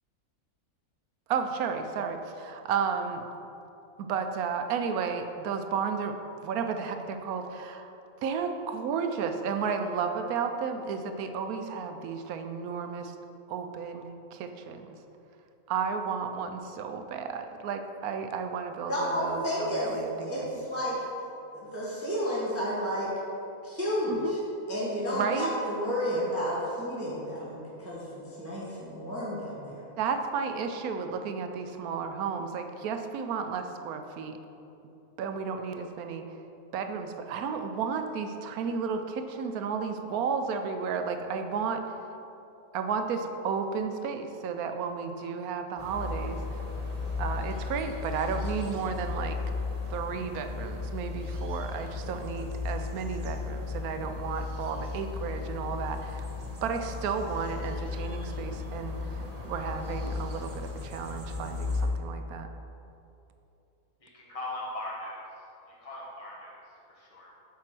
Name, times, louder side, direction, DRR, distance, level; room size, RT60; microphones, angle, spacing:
voice 1, 1.3-3.2 4.0-6.2 6.4-7.9 8.2-13.1 13.5-15.0 15.7-20.6 24.1-24.3 25.1-25.5 30.0-34.4 35.2-36.4 36.7-41.8 42.7-46.6 47.2-49.4 49.9-56.3 56.6-62.5, right 6 dB, 80° right, 7 dB, 1.1 m, -33 dB
voice 2, 18.9-19.9 20.2-21.0 21.5-23.1 23.6-24.4 24.7-29.7, equal, 10° right, -7 dB, 1.2 m, -31 dB
sound 1, 45.8-61.9, left 4 dB, 30° right, 1.0 m, -35 dB
voice 3, 64.3-65.2 65.7-66.6 66.9-67.3, left 1 dB, 25° left, -5 dB, 1.4 m, -39 dB
7.3 x 4.7 x 5.9 m, 2.8 s
omnidirectional pair, 1.5 m